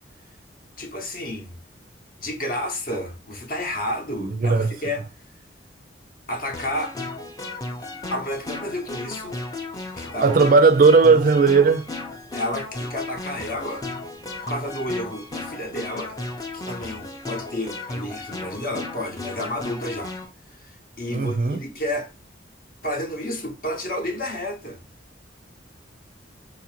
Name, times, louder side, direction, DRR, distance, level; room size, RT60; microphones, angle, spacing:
voice 1, 0.8-1.5 2.2-5.0 6.3-6.9 8.1-9.4 10.0-10.5 12.3-13.8 14.4-16.2 16.5-20.1 20.5-22.1 22.8-24.8, left 1 dB, 50° left, 0.8 m, -31 dB
voice 2, 4.2-4.7 10.2-11.9 21.1-21.6, right 4 dB, 45° right, 0.4 m, -16 dB
sound 1, 6.5-20.3, left 2 dB, 20° left, 0.5 m, -35 dB
3.9 x 2.5 x 2.8 m
head